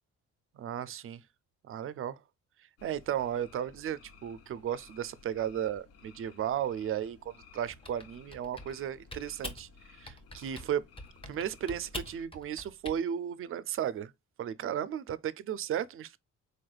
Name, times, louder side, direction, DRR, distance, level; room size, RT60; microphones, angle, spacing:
voice 1, 0.5-1.2 1.6-2.2 2.8-10.8 11.3-14.1 14.4-16.2, right 9 dB, 45° right, 0.4 m, -35 dB
sound 1, 2.8-12.2, left 5 dB, 55° left, 0.7 m, -57 dB
Typing, 7.6-8.8 9.1-9.6 10.0-10.7 11.0-13.0, left 1 dB, 20° left, 0.8 m, -43 dB
4.1 x 3.2 x 2.3 m
cardioid pair, 90°, 30 cm